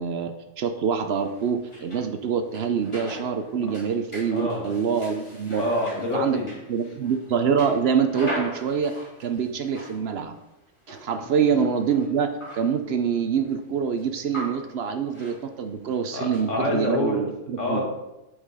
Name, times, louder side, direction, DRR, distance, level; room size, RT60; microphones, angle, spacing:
voice 1, 0.0-5.6 6.1-6.4 6.7-8.9 9.2-10.3 10.9-17.9, right 6 dB, 65° right, 8 dB, 0.8 m, -25 dB
sound 1, 1.1-2.1 2.5-10.1 10.8-13.2 13.4-13.5 14.0-14.8 15.1-15.4 15.9-16.0 16.3-16.8, right 1 dB, 25° left, 2.8 m, -40 dB
voice 2, 4.3-4.7 5.6-6.5 16.1-17.2 17.6-17.9, left 1 dB, 75° left, 0 dB, 2.0 m, -26 dB
6.2 x 5.8 x 4.8 m, 0.95 s
omnidirectional pair, 1.3 m